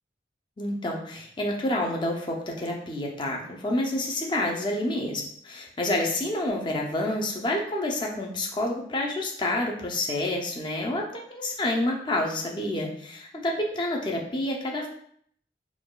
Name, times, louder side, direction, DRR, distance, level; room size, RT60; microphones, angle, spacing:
voice 1, 0.6-14.9, left 1 dB, 25° left, 0 dB, 0.5 m, -28 dB
4.6 x 2.3 x 2.2 m, 0.63 s
head